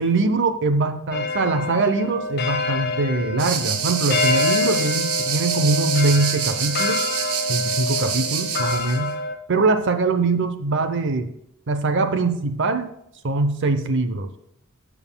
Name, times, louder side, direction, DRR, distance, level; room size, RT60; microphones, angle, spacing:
voice 1, 0.0-7.0 7.5-9.1 9.5-11.3 11.7-12.9 13.2-14.3, right 3 dB, 55° right, 8 dB, 0.7 m, -22 dB
sound 1, 1.1-9.4, left 4 dB, 45° left, 0.9 m, -27 dB
sound 2, 3.4-9.0, right 8 dB, 75° right, 1.0 m, -27 dB
12.5 x 7.1 x 2.2 m, 0.78 s
head